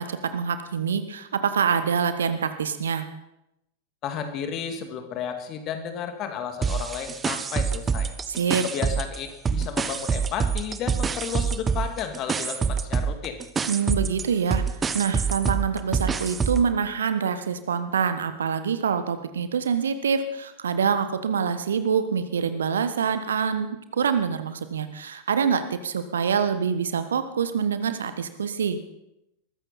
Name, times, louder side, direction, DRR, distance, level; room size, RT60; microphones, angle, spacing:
voice 1, 0.0-3.0 8.3-8.6 13.7-14.6 14.9-23.7 23.9-28.8, right 6 dB, 65° right, 11 dB, 1.3 m, -25 dB
voice 2, 4.0-8.1 8.6-13.4, left 7 dB, 35° left, 7 dB, 2.2 m, -33 dB
sound 1, 6.6-9.2 9.5-16.7, right 6 dB, 20° right, 1.0 m, -26 dB
21.0 x 14.5 x 4.3 m, 0.86 s
figure-of-eight pair, 90°, 0 cm